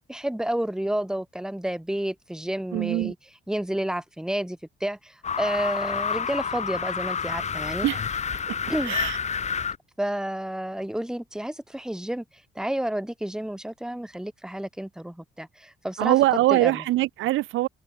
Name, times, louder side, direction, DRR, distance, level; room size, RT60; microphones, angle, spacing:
voice 1, 0.0-3.2 3.5-7.9 8.7-9.0 10.0-12.2 12.6-16.2 16.5-16.8, right 1 dB, 5° right, 1.9 m, -30 dB
voice 2, 2.7-3.1 7.8-8.0 8.5-8.6 8.8-9.2 16.0-17.7, right 16 dB, 90° right, 1.1 m, -23 dB
sound 1, 5.2-9.8, left 6 dB, 35° left, 0.8 m, -29 dB
cardioid pair, 90°, 20 cm